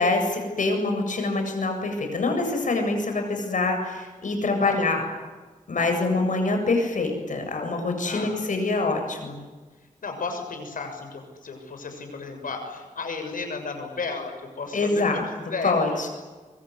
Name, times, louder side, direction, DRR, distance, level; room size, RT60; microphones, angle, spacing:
voice 1, 0.0-5.0 5.7-9.4 14.7-15.2 15.6-16.1, left 3 dB, 70° left, 4 dB, 7.8 m, -25 dB
voice 2, 4.6-4.9 5.7-6.0 8.0-8.4 9.8-15.7, left 4 dB, 90° left, 5 dB, 6.8 m, -34 dB
25.0 x 24.5 x 9.7 m, 1.3 s
wide cardioid pair, 110°, 14 cm